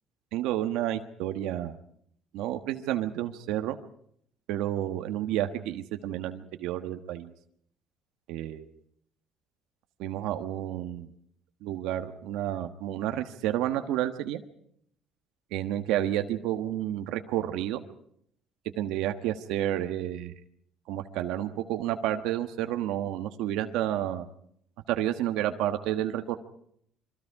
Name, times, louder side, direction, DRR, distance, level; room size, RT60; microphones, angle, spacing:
voice 1, 0.3-1.8 2.3-3.8 4.5-7.3 8.3-8.7 10.0-11.1 11.6-14.4 15.5-17.8 18.8-20.3 20.9-24.2 24.9-26.4, right 12 dB, 80° right, 7 dB, 1.4 m, -30 dB
28.0 x 24.0 x 4.8 m, 0.67 s
cardioid pair, 155°, 0 cm